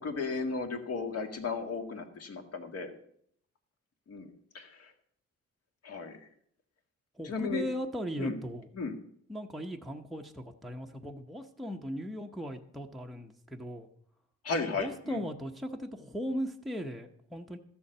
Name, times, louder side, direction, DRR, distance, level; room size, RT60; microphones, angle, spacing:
voice 1, 0.0-2.9 4.1-4.9 5.8-6.3 7.2-7.7 8.2-8.4 8.7-9.0 14.4-15.2, left 4 dB, 55° left, 5 dB, 1.8 m, -35 dB
voice 2, 7.1-8.7 9.3-13.9 14.7-17.6, equal, ahead, 2 dB, 0.7 m, -38 dB
13.5 x 7.0 x 6.6 m, 0.66 s
cardioid pair, 135°, 29 cm